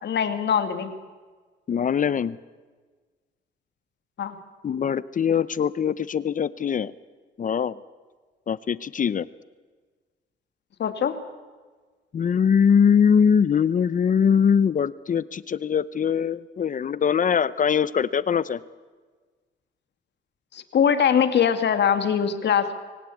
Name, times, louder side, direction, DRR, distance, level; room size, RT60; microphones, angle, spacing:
voice 1, 0.0-0.9 4.2-4.4 10.8-11.2 20.5-22.7, left 8 dB, 60° left, 9 dB, 2.3 m, -22 dB
voice 2, 1.7-2.4 4.6-6.9 7.4-7.7 8.5-9.3 12.1-18.6, left 7 dB, 40° left, 18 dB, 0.7 m, -22 dB
25.0 x 17.0 x 8.5 m, 1.4 s
cardioid pair, 90°, 20 cm